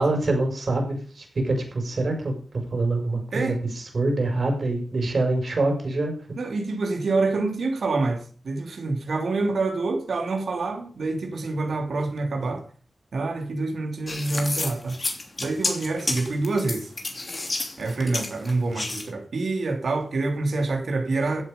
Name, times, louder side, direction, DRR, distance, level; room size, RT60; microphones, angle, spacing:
voice 1, 0.0-2.3 2.7-6.1, right 2 dB, 60° right, 5.5 m, -25 dB
voice 2, 6.4-12.6 13.1-15.0 15.4-16.9 17.8-21.4, right 3 dB, 80° right, 3.0 m, -26 dB
sound 1, 14.1-19.1, left 2 dB, 40° left, 2.9 m, -30 dB
15.0 x 7.8 x 5.3 m
wide cardioid pair, 85°, 0 cm